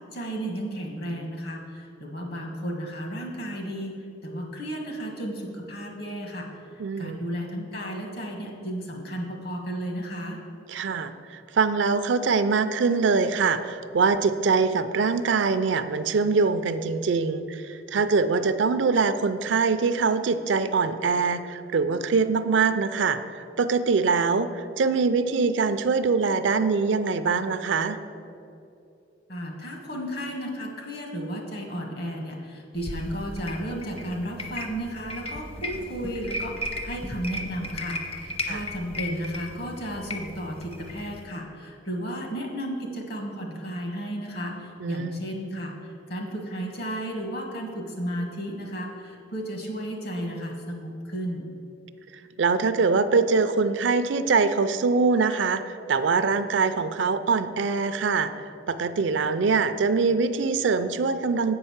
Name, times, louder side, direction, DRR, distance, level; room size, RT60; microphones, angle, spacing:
voice 1, 0.1-4.0 4.2-6.5 7.0-10.4 29.3-45.7 46.1-51.5, equal, 55° left, 1 dB, 1.5 m, -33 dB
voice 2, 6.8-7.2 10.7-28.0 38.5-38.6 44.8-45.2 52.4-61.5, right 4 dB, 70° right, 11 dB, 0.4 m, -23 dB
sound 1, 32.8-41.2, left 1 dB, 30° left, 0.7 m, -36 dB
8.0 x 5.5 x 7.2 m, 2.7 s
head